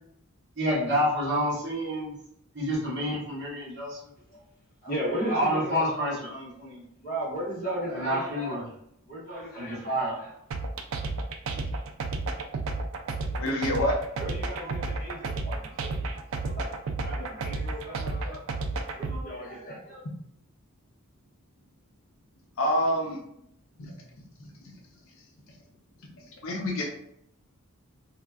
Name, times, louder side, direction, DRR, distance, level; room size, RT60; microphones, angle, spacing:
voice 1, 0.6-2.1 2.5-4.1 5.3-6.8 7.9-8.7 9.6-10.2, equal, 50° right, -4 dB, 1.0 m, -28 dB
voice 2, 4.8-5.9 7.0-8.7 9.1-10.3 13.7-16.7 17.0-18.5 18.9-20.0, right 1 dB, 40° left, -7 dB, 1.2 m, -36 dB
sound 1, 10.5-19.2, right 3 dB, 70° right, 0.3 m, -31 dB
voice 3, 13.4-14.0 22.6-23.2 23.8-23.9 24.4-24.5 26.4-26.9, left 1 dB, 65° left, 0 dB, 0.6 m, -27 dB
2.9 x 2.3 x 2.3 m, 0.72 s
head